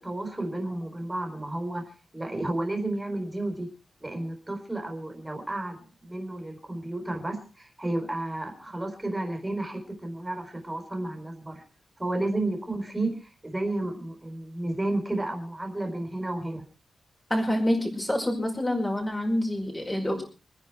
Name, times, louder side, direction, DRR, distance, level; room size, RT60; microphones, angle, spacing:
voice 1, 0.0-3.7 4.0-11.6 12.0-16.6, right 2 dB, 15° right, 4 dB, 4.4 m, -32 dB
voice 2, 17.3-20.2, left 1 dB, 10° left, 1 dB, 5.1 m, -27 dB
26.0 x 9.9 x 4.6 m, 0.36 s
wide cardioid pair, 150°, 0 cm